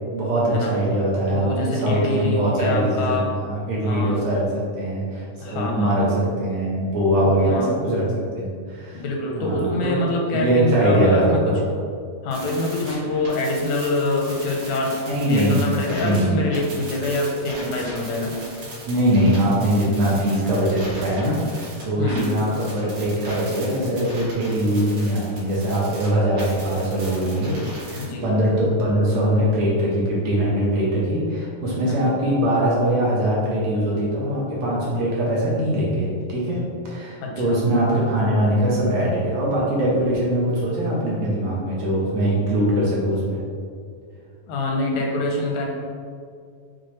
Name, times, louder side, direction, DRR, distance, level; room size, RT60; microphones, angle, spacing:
voice 1, 0.1-3.1 3.4-8.1 8.4-9.0 9.3-9.9 10.3-11.6 15.1-15.6 16.0-16.3 18.9-27.5 27.9-36.6 36.8-43.4, right 1 dB, 70° right, -5 dB, 1.9 m, -22 dB
voice 2, 1.3-3.3 3.8-4.2 5.4-6.1 7.2-7.7 8.9-11.5 12.2-18.3 22.0-22.2 28.0-28.3 31.9-32.1 37.2-37.6 44.5-45.7, left 2 dB, 85° left, 0 dB, 2.0 m, -25 dB
sound 1, 12.3-16.2 16.5-26.1 26.3-28.0, right 1 dB, 50° right, 1.9 m, -38 dB
6.1 x 2.4 x 3.0 m, 2.2 s
omnidirectional pair, 3.3 m